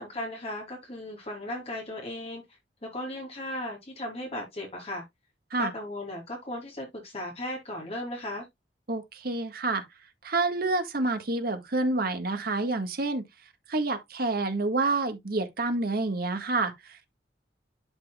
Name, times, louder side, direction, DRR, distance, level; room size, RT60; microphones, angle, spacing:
voice 1, 0.0-5.0 5.5-8.5, left 1 dB, 35° left, 2.8 m, -36 dB
voice 2, 8.9-9.8 10.2-13.3 13.7-17.1, right 3 dB, 60° right, 1.7 m, -28 dB
11.5 x 4.7 x 2.3 m
head